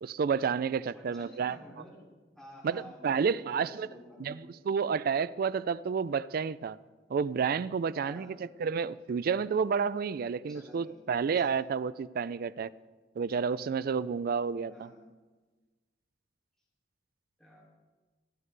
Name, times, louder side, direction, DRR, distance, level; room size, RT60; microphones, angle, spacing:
voice 1, 0.0-1.6 2.6-3.9 4.2-6.8 7.1-12.7 13.2-14.9, right 6 dB, 55° right, 0.3 m, -30 dB
voice 2, 0.9-2.0 2.4-4.4 8.0-8.4 10.5-11.0 14.7-15.0 17.4-17.7, equal, 5° left, 2.8 m, -51 dB
17.0 x 12.5 x 3.3 m
head